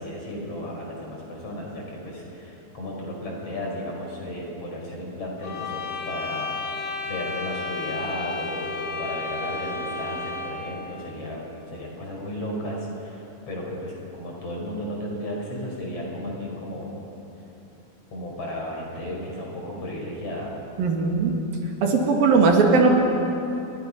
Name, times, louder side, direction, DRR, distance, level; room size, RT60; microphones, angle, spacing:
voice 1, 0.0-6.5 7.1-11.4 11.7-17.0 18.1-20.5, left 1 dB, 40° left, -1 dB, 5.9 m, -34 dB
sound 1, 5.4-10.7, left 3 dB, 65° left, 4.1 m, -32 dB
voice 2, 20.8-21.3 21.8-23.0, right 4 dB, 80° right, 1 dB, 4.1 m, -18 dB
29.5 x 23.5 x 5.6 m, 2.9 s
omnidirectional pair, 4.1 m